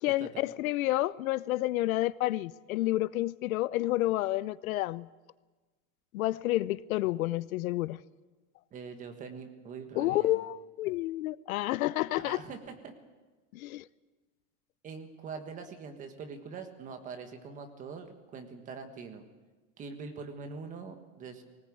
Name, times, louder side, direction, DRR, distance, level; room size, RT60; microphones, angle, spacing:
voice 1, 0.0-5.1 6.1-8.0 10.0-12.4 13.5-13.8, left 16 dB, 85° left, 0.8 m, -30 dB
voice 2, 8.7-10.4 12.2-12.9 14.8-19.2 19.8-21.4, right 5 dB, 20° right, 1.5 m, -43 dB
20.5 x 19.0 x 8.7 m
supercardioid pair, 180°, 41 cm